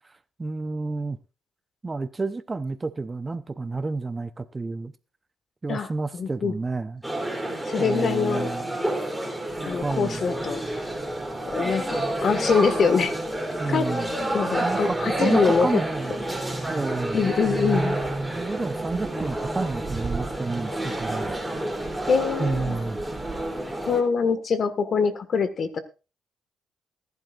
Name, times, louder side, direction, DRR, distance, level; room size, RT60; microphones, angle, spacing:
voice 1, 0.4-1.2 1.8-4.9 5.6-7.0 7.8-8.8 9.8-10.2 13.6-14.1 14.6-16.1 16.7-17.2 18.3-21.4 22.4-23.0, right 3 dB, 25° right, 0.8 m, -30 dB
voice 2, 6.1-6.5 7.7-8.5 9.6-10.6 11.5-13.2 13.7-13.9 14.3-15.7 17.1-18.0 22.1-22.8 23.9-25.8, left 5 dB, 55° left, 1.7 m, -24 dB
sound 1, 7.0-24.0, right 1 dB, ahead, 3.2 m, -29 dB
sound 2, 9.5-24.0, right 4 dB, 40° right, 1.4 m, -44 dB
19.0 x 11.0 x 2.5 m
cardioid pair, 90°, 0 cm